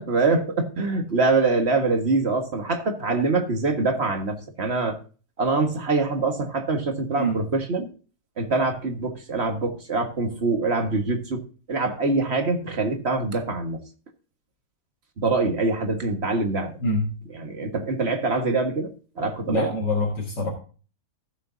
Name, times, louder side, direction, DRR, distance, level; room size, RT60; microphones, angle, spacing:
voice 1, 0.0-5.0 5.4-7.9 8.4-11.4 11.7-13.8 15.2-16.7 17.3-19.7, right 3 dB, 40° right, 5 dB, 1.7 m, -24 dB
voice 2, 19.5-20.5, left 1 dB, 85° left, -2 dB, 2.7 m, -25 dB
16.0 x 7.2 x 2.6 m, 0.37 s
omnidirectional pair, 1.8 m